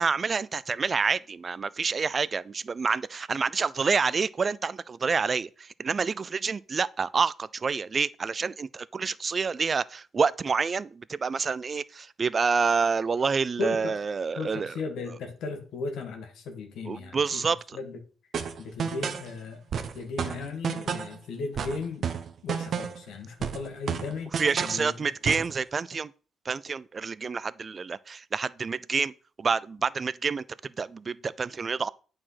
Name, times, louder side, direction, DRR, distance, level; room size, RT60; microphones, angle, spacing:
voice 1, 0.0-14.7 16.9-17.8 24.4-26.1 26.5-31.9, right 5 dB, 35° right, 0.4 m, -28 dB
voice 2, 13.6-14.0 14.4-17.4 17.7-18.0 18.6-19.6 19.9-22.1 22.4-24.9, left 3 dB, 80° left, 1.8 m, -36 dB
sound 1, 18.3-19.3 19.7-21.2 21.6-23.1 23.4-24.8 25.2-25.5, right 7 dB, 55° right, 1.0 m, -31 dB
8.6 x 4.8 x 5.7 m
cardioid pair, 90°, 0 cm